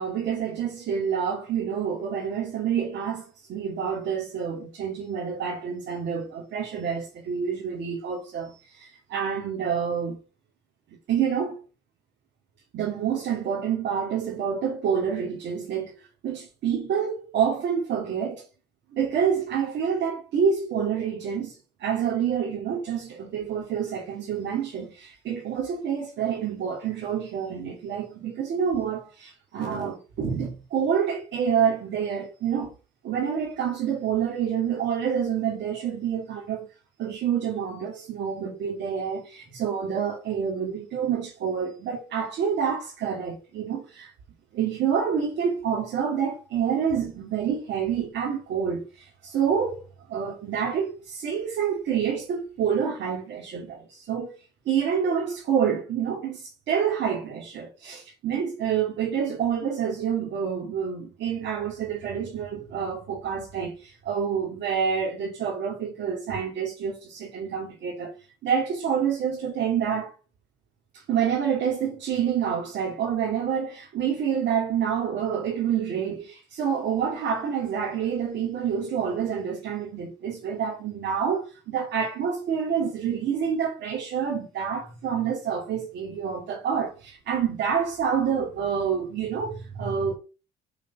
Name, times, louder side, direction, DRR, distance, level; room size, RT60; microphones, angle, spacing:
voice 1, 0.0-10.2 11.1-11.6 12.7-18.4 18.9-21.5 21.8-32.7 33.0-36.7 37.0-44.1 44.5-49.8 50.1-54.3 54.7-68.1 68.4-70.1 70.9-90.1, right 7 dB, 65° right, 2.6 m, -28 dB
5.8 x 5.0 x 5.7 m
supercardioid pair, 75°, 20 cm